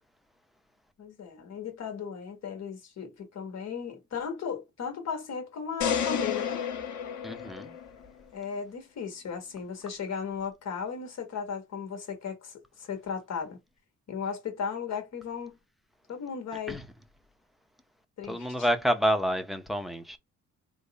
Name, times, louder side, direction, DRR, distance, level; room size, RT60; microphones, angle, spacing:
voice 1, 1.0-6.6 8.3-13.6 14.1-15.6 16.1-16.8 18.2-18.5, left 6 dB, 60° left, 1.3 m, -36 dB
sound 1, 5.8-8.1, left 8 dB, 75° left, 1.2 m, -31 dB
voice 2, 7.2-7.8 16.7-16.8 18.3-20.2, equal, ahead, 0.7 m, -28 dB
3.5 x 2.1 x 4.0 m
cardioid pair, 90°, 30 cm